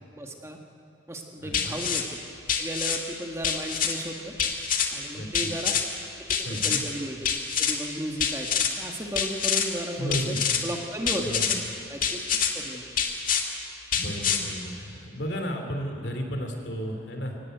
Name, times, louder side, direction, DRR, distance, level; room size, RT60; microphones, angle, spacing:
voice 1, 0.1-0.6 1.1-2.2 2.6-4.4 4.9-5.8 6.3-7.3 7.6-10.4 10.6-11.6 11.9-12.8, right 1 dB, 15° right, 2 dB, 1.4 m, -35 dB
voice 2, 1.4-1.8 5.1-5.5 6.4-6.8 10.0-10.4 11.2-11.6 13.9-17.4, equal, 60° left, 4 dB, 2.9 m, -33 dB
sound 1, 1.5-2.0 2.5-3.0 3.4-3.9 4.4-4.9 5.3-5.8 6.3-6.8 7.2-7.8 8.2-8.7 9.2-9.7 10.1-10.6 11.1-11.6 12.0-12.5 13.0-13.4 13.9-14.4, left 7 dB, 45° left, 1.9 m, -26 dB
23.5 x 17.5 x 9.2 m, 2.7 s
head